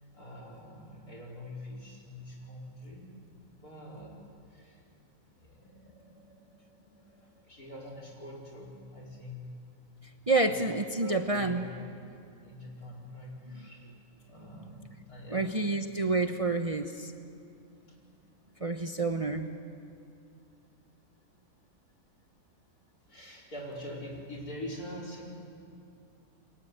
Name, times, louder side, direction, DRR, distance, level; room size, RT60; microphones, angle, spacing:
voice 1, 0.1-3.1 3.4-4.2 4.5-4.8 5.4-9.5 10.4-13.9 14.3-15.5 23.1-25.3, left 1 dB, 80° left, -3 dB, 5.4 m, -45 dB
voice 2, 10.3-11.7 15.3-17.1 18.6-19.5, right 3 dB, 25° right, 5 dB, 0.9 m, -28 dB
28.5 x 23.0 x 8.2 m, 2.5 s
omnidirectional pair, 1.6 m